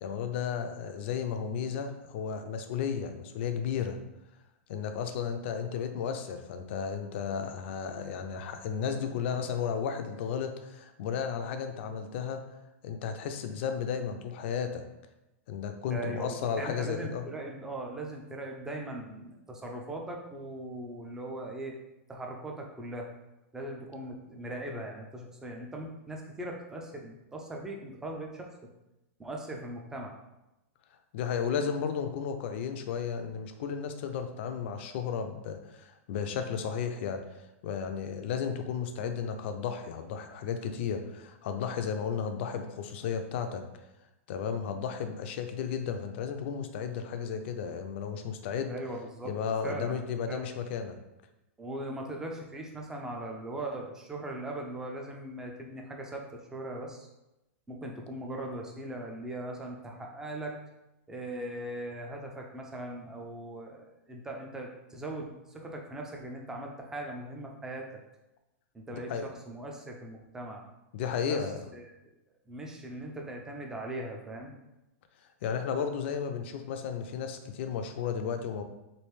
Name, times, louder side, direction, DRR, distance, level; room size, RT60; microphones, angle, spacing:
voice 1, 0.0-4.0 4.7-12.4 12.8-14.8 15.5-17.2 31.1-37.2 37.6-43.6 44.3-48.7 49.2-51.0 68.9-69.2 70.9-71.6 75.4-78.6, left 7 dB, 55° left, 7 dB, 0.4 m, -33 dB
voice 2, 15.9-21.8 22.1-23.1 23.5-28.5 29.2-30.2 48.7-49.3 49.6-50.0 50.3-50.4 51.6-57.1 57.7-60.5 61.1-67.9 68.7-70.6 71.3-71.4 71.7-71.9 72.5-74.6, right 1 dB, 5° right, 1 dB, 0.4 m, -39 dB
3.2 x 2.5 x 3.2 m, 0.94 s
hypercardioid pair, 145°, 7 cm